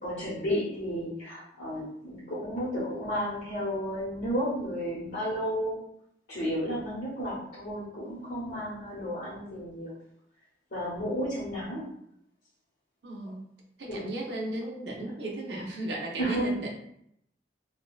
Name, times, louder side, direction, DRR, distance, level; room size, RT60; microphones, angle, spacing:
voice 1, 0.0-5.8 6.3-9.9 10.7-11.9 13.9-14.0 16.2-16.5, equal, 60° left, -9 dB, 1.0 m, -32 dB
voice 2, 13.0-13.4 13.8-16.8, right 1 dB, 65° right, -1 dB, 0.7 m, -35 dB
3.5 x 2.3 x 2.3 m, 0.73 s
head